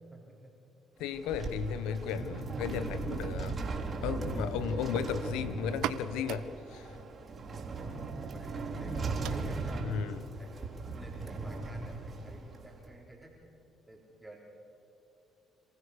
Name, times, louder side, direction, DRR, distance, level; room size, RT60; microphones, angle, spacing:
voice 1, 0.1-0.5 1.7-2.0 4.6-5.0 7.5-8.1 8.3-9.8 10.4-13.4 13.9-14.4, right 1 dB, 5° right, -2 dB, 4.1 m, -53 dB
voice 2, 1.0-3.6 4.0-6.9 9.8-10.3, left 7 dB, 85° left, 13 dB, 1.1 m, -35 dB
sound 1, 1.0-12.9, right 3 dB, 40° right, 3.9 m, -38 dB
sound 2, 5.6-13.1, right 11 dB, 75° right, 0.8 m, -45 dB
27.5 x 15.5 x 6.7 m, 2.9 s
supercardioid pair, 70°, 0 cm